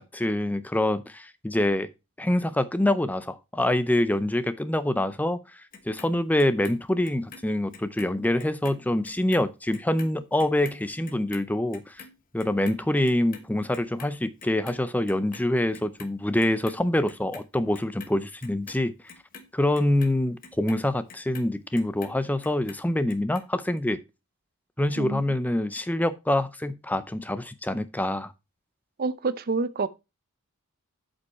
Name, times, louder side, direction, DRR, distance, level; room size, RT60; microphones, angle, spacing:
voice 1, 0.0-1.9 2.2-12.0 12.3-18.9 19.5-24.0 24.8-28.3, left 1 dB, 5° left, 0.5 m, -25 dB
Clock, 5.7-8.1 8.4-14.8 15.1-16.1 16.4-17.4 17.7-22.2 22.4-23.4 23.8-23.9, left 5 dB, 40° left, 1.0 m, -46 dB
voice 2, 29.0-29.9, right 3 dB, 40° right, 0.5 m, -27 dB
8.2 x 5.3 x 4.2 m
head